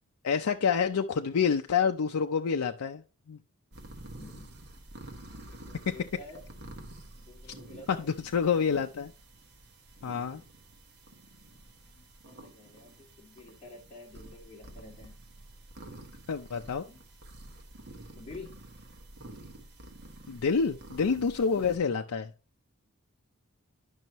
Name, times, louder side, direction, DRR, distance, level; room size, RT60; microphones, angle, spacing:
voice 1, 0.2-3.4 5.9-6.0 7.9-9.1 10.0-10.4 16.3-16.8 20.3-22.3, left 6 dB, 90° left, 5 dB, 0.5 m, -28 dB
sound 1, 3.7-21.8, right 1 dB, 50° right, 1.3 m, -49 dB
voice 2, 4.2-4.5 5.5-6.4 7.1-8.1 11.4-11.6 11.9-15.2 16.8-17.0 18.1-18.6 21.4-21.7, left 2 dB, 30° left, -3 dB, 2.3 m, -49 dB
11.0 x 5.4 x 3.0 m, 0.31 s
head